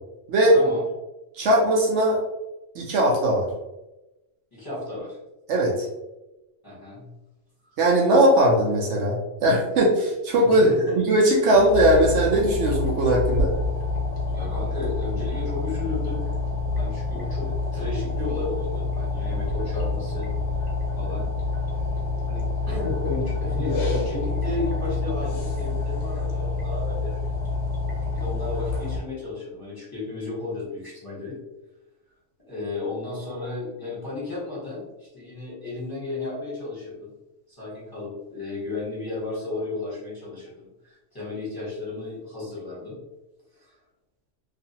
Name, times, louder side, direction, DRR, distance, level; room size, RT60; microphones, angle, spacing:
voice 1, 0.5-0.8 4.5-5.2 6.6-7.1 10.4-11.0 14.3-16.2 16.8-20.3 20.9-21.3 22.3-27.4 28.1-31.4 32.5-37.1 37.5-43.0, left 3 dB, 20° left, -9 dB, 1.1 m, -33 dB
voice 2, 1.3-2.2 2.7-3.5 5.5-5.9 7.8-13.5, right 1 dB, 70° right, -2 dB, 0.8 m, -19 dB
sound 1, 11.5-29.0, left 3 dB, 65° left, 0.8 m, -27 dB
2.5 x 2.4 x 2.7 m, 0.99 s
omnidirectional pair, 1.3 m